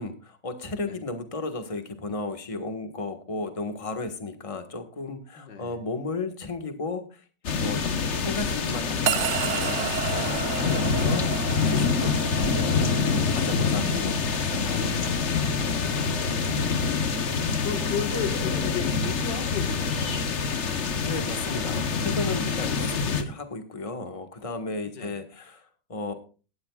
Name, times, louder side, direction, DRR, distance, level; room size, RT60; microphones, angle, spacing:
voice 1, 0.0-7.2 7.6-7.9 8.1-15.2 21.0-26.1, left 3 dB, 20° left, 1.5 m, -34 dB
voice 2, 5.4-5.8 15.8-17.2 17.6-20.7 22.4-22.9 24.9-25.2, left 7 dB, 80° left, 2.3 m, -36 dB
sound 1, 7.4-23.2, left 5 dB, 45° left, 1.2 m, -26 dB
sound 2, 9.1-19.4, right 9 dB, 55° right, 0.9 m, -34 dB
17.5 x 14.0 x 2.4 m
omnidirectional pair, 1.9 m